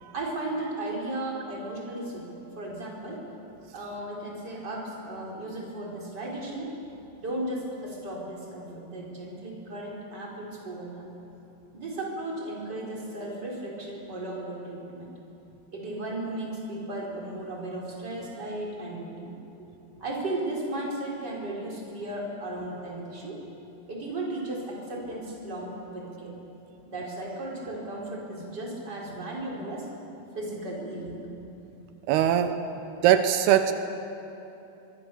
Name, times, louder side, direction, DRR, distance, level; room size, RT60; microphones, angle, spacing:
voice 1, 0.1-3.3 3.7-6.8 7.2-11.0 11.7-15.1 15.7-19.3 20.0-23.4 23.9-26.3 26.9-29.9 30.3-31.3, right 1 dB, 25° right, -2 dB, 4.8 m, -35 dB
voice 2, 32.1-32.6 33.0-33.7, right 11 dB, 85° right, 8 dB, 2.9 m, -21 dB
23.5 x 23.5 x 7.0 m, 3.0 s
omnidirectional pair, 4.6 m